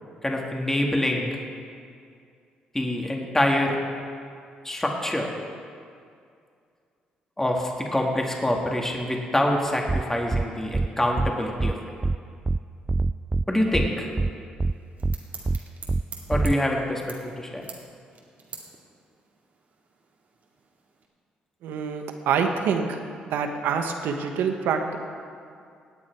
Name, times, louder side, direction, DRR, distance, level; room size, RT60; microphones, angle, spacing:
voice 1, 0.2-1.3 2.7-3.8 4.6-5.3 7.4-11.8 13.5-14.1 16.3-17.7, left 1 dB, 10° left, 0 dB, 2.2 m, -25 dB
sound 1, 9.9-10.0 10.3-10.4 10.7-10.9 11.2-11.3 11.6-11.7 12.0-12.2 12.5-12.6 12.9-13.4 13.7-13.9 14.2-14.3 14.6-14.7 15.0-15.2 15.5-15.6 15.9-16.0 16.3-16.5, right 3 dB, 20° right, 0.4 m, -24 dB
sound 2, 14.6-21.1, right 5 dB, 55° right, 2.3 m, -46 dB
voice 2, 21.6-22.9 23.3-25.0, right 6 dB, 75° right, 5 dB, 1.2 m, -26 dB
18.0 x 8.7 x 4.7 m, 2.3 s
supercardioid pair, 60°, 3 cm